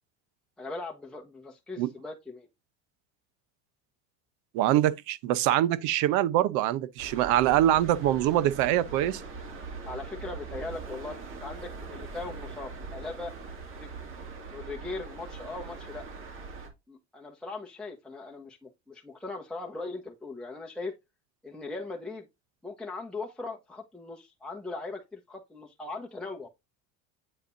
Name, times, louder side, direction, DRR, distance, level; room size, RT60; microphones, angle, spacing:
voice 1, 0.6-2.5 9.8-13.3 13.8-13.9 14.5-16.0 16.9-20.9 21.4-22.3 22.6-26.5, left 3 dB, 5° left, 1.2 m, -39 dB
voice 2, 4.5-9.2, right 13 dB, 70° right, 0.9 m, -24 dB
sound 1, 7.0-16.7, right 4 dB, 40° right, 2.6 m, -42 dB
8.6 x 5.1 x 2.7 m
cardioid pair, 135°, 31 cm